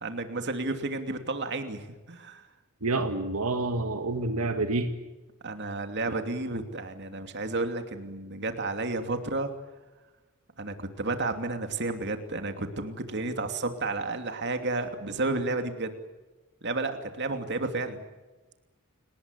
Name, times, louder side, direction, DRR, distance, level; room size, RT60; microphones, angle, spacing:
voice 1, 0.0-2.4 5.4-9.5 10.6-15.9 16.6-18.0, right 2 dB, 50° right, 7 dB, 2.9 m, -32 dB
voice 2, 2.8-4.9, right 2 dB, 80° right, 6 dB, 2.0 m, -28 dB
29.5 x 19.5 x 8.3 m, 1.2 s
head